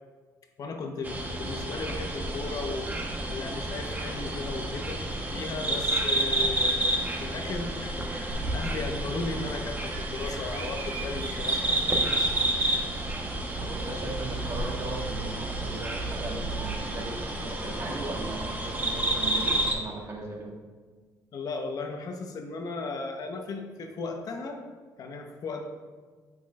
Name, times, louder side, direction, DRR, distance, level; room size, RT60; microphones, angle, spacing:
voice 1, 0.6-12.2 21.3-24.6 25.0-25.6, left 3 dB, 60° left, 4 dB, 0.9 m, -36 dB
sound 1, 1.0-19.7, right 1 dB, 25° right, 1.1 m, -30 dB
Bird vocalization bird call bird song, 8.3-16.7, right 2 dB, 80° right, 1.6 m, -38 dB
voice 2, 13.6-20.6, right 2 dB, 40° right, -1 dB, 1.6 m, -37 dB
11.0 x 6.0 x 2.5 m, 1.5 s
cardioid pair, 105°, 7 cm